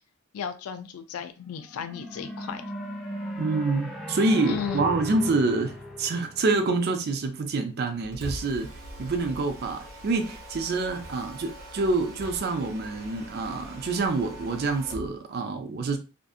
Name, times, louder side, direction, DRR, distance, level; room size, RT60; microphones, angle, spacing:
voice 1, 0.3-2.6 4.5-4.9, left 7 dB, 85° left, 0.3 m, -34 dB
sound 1, 1.6-7.1, equal, ahead, 0.6 m, -37 dB
voice 2, 3.4-16.0, right 3 dB, 50° right, 0.4 m, -27 dB
Mechanisms, 7.9-15.1, right 1 dB, 85° right, 0.9 m, -42 dB
2.6 x 2.5 x 2.3 m
head